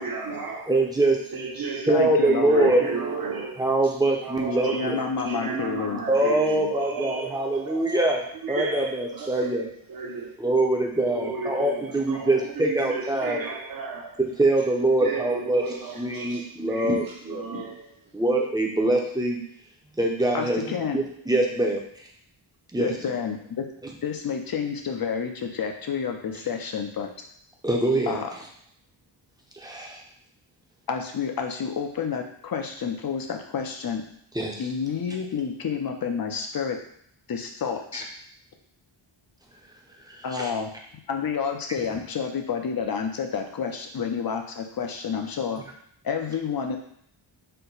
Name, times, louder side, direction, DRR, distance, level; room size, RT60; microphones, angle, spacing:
voice 1, 0.0-0.8 1.3-10.4 11.0-14.2 14.8-18.1, right 4 dB, 45° right, 0.8 m, -34 dB
voice 2, 0.7-1.2 1.9-2.8 3.6-5.0 6.1-8.2 8.5-9.7 10.4-13.4 14.4-15.6 16.0-17.4 18.1-19.4 20.0-20.6 20.9-21.8 22.7-22.9 27.6-28.2 29.6-30.0 34.3-34.6 40.3-40.5, right 2 dB, 10° right, 0.6 m, -23 dB
voice 3, 1.9-2.7 4.7-6.0 20.3-21.0 22.8-23.6 24.0-27.1 28.1-28.3 30.9-34.0 34.6-36.8 37.3-38.1 40.2-40.7 41.1-45.6 46.0-46.8, left 6 dB, 45° left, 0.6 m, -29 dB
4.4 x 2.1 x 3.9 m
wide cardioid pair, 120°, 48 cm